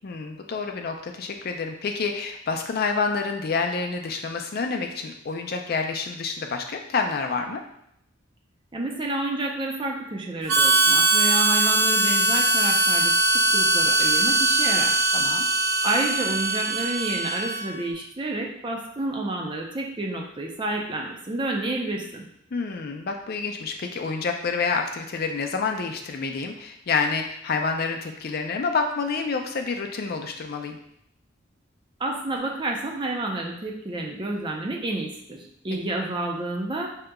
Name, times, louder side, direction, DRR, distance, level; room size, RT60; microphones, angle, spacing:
voice 1, 0.0-7.6 15.1-15.4 22.5-30.8, left 4 dB, 50° left, 4 dB, 0.4 m, -28 dB
voice 2, 8.7-15.0 15.8-22.3 32.0-36.9, right 2 dB, 25° right, 0 dB, 0.5 m, -29 dB
Harmonica, 10.5-17.8, right 2 dB, 75° right, 0.7 m, -21 dB
4.8 x 2.8 x 2.2 m, 0.75 s
head